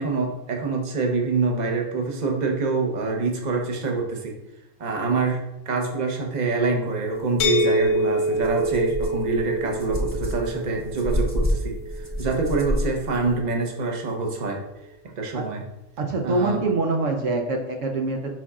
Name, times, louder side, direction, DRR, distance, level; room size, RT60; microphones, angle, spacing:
voice 1, 0.0-4.4 4.8-14.6 15.2-15.6 16.2-16.6, right 3 dB, 35° right, 1 dB, 1.0 m, -25 dB
sound 1, 7.4-13.2, equal, 80° left, 1.0 m, -27 dB
sound 2, 7.8-7.9 8.4-13.4, equal, 20° right, 0.5 m, -29 dB
voice 2, 16.0-18.3, right 3 dB, 75° right, 2 dB, 1.1 m, -24 dB
10.5 x 4.2 x 2.4 m, 0.90 s
omnidirectional pair, 1.3 m